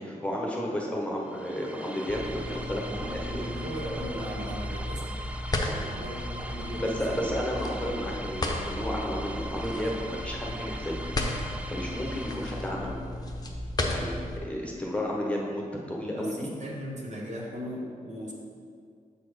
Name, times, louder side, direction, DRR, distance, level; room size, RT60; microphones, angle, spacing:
voice 1, 0.0-3.5 5.6-6.0 6.8-11.0 11.7-13.0 13.8-14.2 14.4-16.5, equal, 10° left, -2 dB, 1.1 m, -32 dB
sound 1, 1.2-13.1, right 1 dB, 10° right, 0.4 m, -42 dB
sound 2, 2.1-14.4, left 1 dB, 25° left, 0.8 m, -34 dB
voice 2, 2.8-5.2 5.9-7.3 16.1-18.3, equal, 50° right, -2 dB, 1.3 m, -37 dB
6.8 x 4.3 x 5.0 m, 2.2 s
cardioid pair, 80°, 15 cm